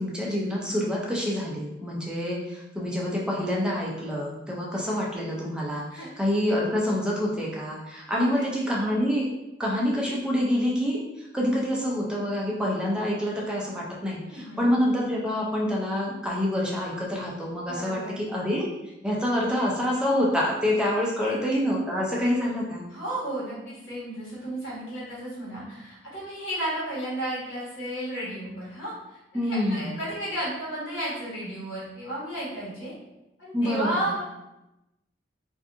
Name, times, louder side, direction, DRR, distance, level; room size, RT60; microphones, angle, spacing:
voice 1, 0.0-9.3 9.6-18.7 19.0-22.8 29.3-30.0 33.5-34.1, left 1 dB, 5° right, -4 dB, 0.4 m, -27 dB
voice 2, 8.0-8.4 14.2-14.7 17.7-18.2 21.2-21.4 22.9-32.9 33.4-34.2, right 1 dB, 85° left, -8 dB, 1.3 m, -33 dB
2.6 x 2.4 x 2.5 m, 0.94 s
head